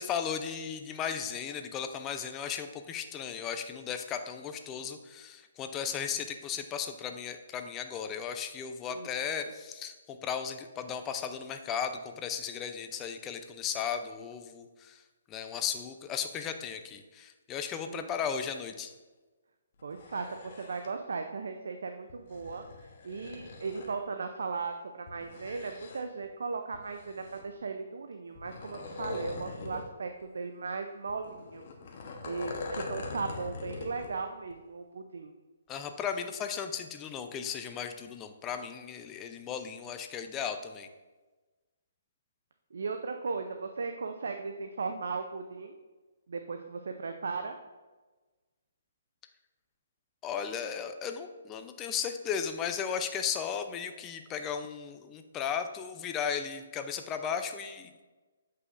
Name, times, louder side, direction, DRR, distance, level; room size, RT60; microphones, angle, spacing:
voice 1, 0.0-15.0 15.3-18.9 35.7-40.9 50.2-57.9, left 7 dB, 20° left, 7 dB, 0.5 m, -36 dB
sound 1, 19.8-20.9 22.1-23.9 25.1-26.3 26.7-27.6 28.3-29.9 30.2-30.3 31.1-34.2 34.5-34.6, left 3 dB, 50° left, 1.0 m, -42 dB
voice 2, 19.8-20.3 20.6-22.6 23.0-31.7 32.2-35.3 42.7-45.7 46.3-47.6, right 4 dB, 70° right, 6 dB, 0.5 m, -37 dB
8.0 x 5.5 x 2.5 m, 1.2 s
hypercardioid pair, 145°, 0 cm